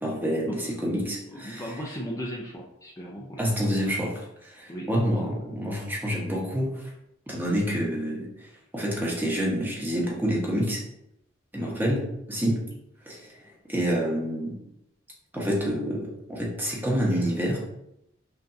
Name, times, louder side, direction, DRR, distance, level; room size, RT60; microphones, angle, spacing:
voice 1, 0.0-1.6 3.4-4.1 4.4-6.8 7.3-8.5 8.7-10.8 11.5-12.0 12.3-12.6 13.1-14.5 15.3-17.6, equal, 10° right, -4 dB, 1.0 m, -27 dB
voice 2, 1.3-3.8 4.7-4.9 11.6-11.9, equal, 15° left, -5 dB, 0.5 m, -37 dB
5.5 x 2.6 x 2.6 m, 0.82 s
head